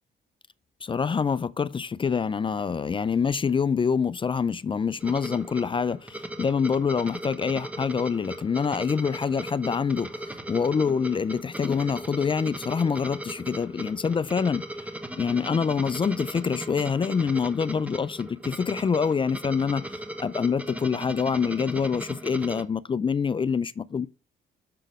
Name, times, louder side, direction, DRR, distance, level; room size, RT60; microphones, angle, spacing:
voice 1, 0.8-24.1, left 6 dB, 25° left, 0.3 m, -26 dB
sound 1, 5.0-22.6, right 1 dB, 5° right, 1.1 m, -38 dB
6.6 x 3.9 x 6.1 m
cardioid pair, 90°, 20 cm